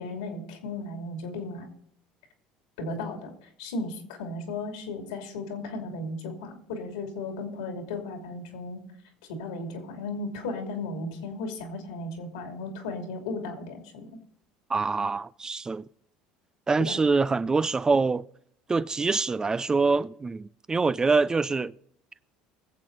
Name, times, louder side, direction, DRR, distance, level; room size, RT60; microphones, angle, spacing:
voice 1, 0.0-1.7 2.8-8.8 9.3-14.1 16.8-17.0, left 2 dB, 90° left, 2.8 m, -35 dB
voice 2, 14.7-15.8 16.7-18.2 18.7-21.7, right 4 dB, 20° right, 0.4 m, -25 dB
20.5 x 7.5 x 4.0 m
supercardioid pair, 90°, 3 cm